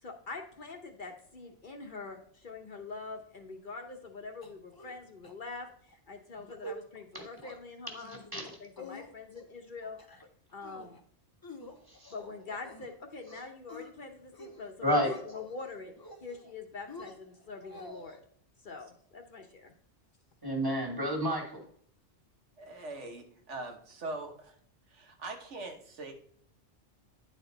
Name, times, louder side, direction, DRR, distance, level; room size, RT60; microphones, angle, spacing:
voice 1, 0.0-10.0 10.5-11.0 12.1-15.9 16.2-18.2 18.6-19.7, left 4 dB, 50° left, 4 dB, 0.9 m, -44 dB
sound 1, 4.4-5.0 5.2-5.3 5.7-6.0 6.4-6.8 7.1-7.6 8.0-8.4 8.8-9.4 9.8-10.3 10.6-11.0 11.4-12.9 13.3-13.9 14.3-14.6 14.9-15.5 16.0-16.5 16.9-18.2, left 1 dB, 25° left, 0.6 m, -47 dB
voice 2, 8.1-8.4 11.9-12.1 14.8-15.1 20.4-21.6, equal, 20° right, 0 dB, 1.8 m, -30 dB
voice 3, 22.6-24.6 24.9-26.1, right 2 dB, 80° right, 3 dB, 1.4 m, -42 dB
9.9 x 4.3 x 3.9 m, 0.62 s
omnidirectional pair, 1.2 m